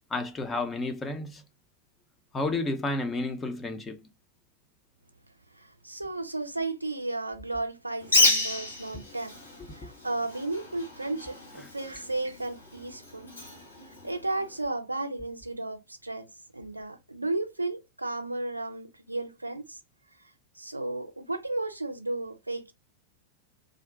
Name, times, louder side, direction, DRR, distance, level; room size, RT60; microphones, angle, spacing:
voice 1, 0.1-1.4 2.3-4.0 8.9-9.0, left 2 dB, 15° left, 0.5 m, -31 dB
voice 2, 5.6-9.3 9.7-13.3 14.0-16.3 16.5-19.8 20.6-22.7, right 2 dB, 85° right, 0.4 m, -34 dB
Bird, 8.0-14.7, left 2 dB, 80° left, 1.0 m, -30 dB
2.5 x 2.1 x 2.3 m
figure-of-eight pair, 90°, 0 cm